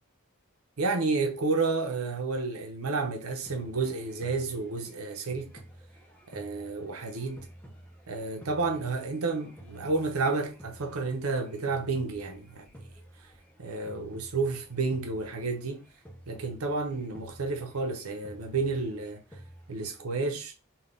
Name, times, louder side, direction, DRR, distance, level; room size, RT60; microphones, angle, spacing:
voice 1, 0.8-5.6 6.3-7.5 8.1-12.7 13.6-15.9 16.3-19.2 19.7-20.5, right 3 dB, 90° right, 0.8 m, -31 dB
sound 1, 3.4-20.0, right 1 dB, 5° left, 0.6 m, -52 dB
3.9 x 2.4 x 3.7 m
head